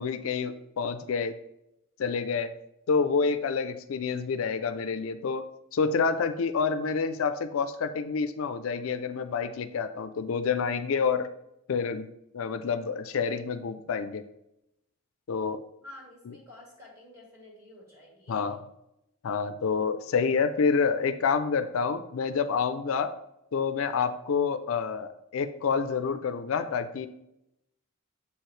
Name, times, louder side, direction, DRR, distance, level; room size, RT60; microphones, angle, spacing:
voice 1, 0.0-1.3 2.0-2.5 2.9-5.4 5.7-11.3 11.7-12.1 12.3-14.2 15.3-15.6 18.3-18.6 19.2-23.1 23.5-27.1, left 5 dB, 75° left, 10 dB, 0.4 m, -28 dB
voice 2, 15.8-18.5, left 1 dB, 15° right, -3 dB, 2.0 m, -50 dB
7.0 x 4.7 x 3.1 m, 0.84 s
head